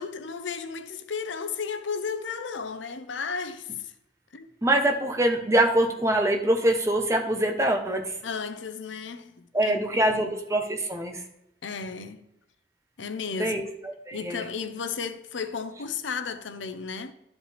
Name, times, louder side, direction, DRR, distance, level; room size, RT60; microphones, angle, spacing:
voice 1, 0.0-3.9 4.3-4.5 8.2-9.8 10.1-10.3 11.6-12.2 13.0-13.6 14.1-17.1, left 5 dB, 85° left, 0.7 m, -34 dB
voice 2, 4.6-8.1 9.5-11.2 13.4-14.4, right 1 dB, 15° right, 0.9 m, -24 dB
12.0 x 5.3 x 3.3 m
head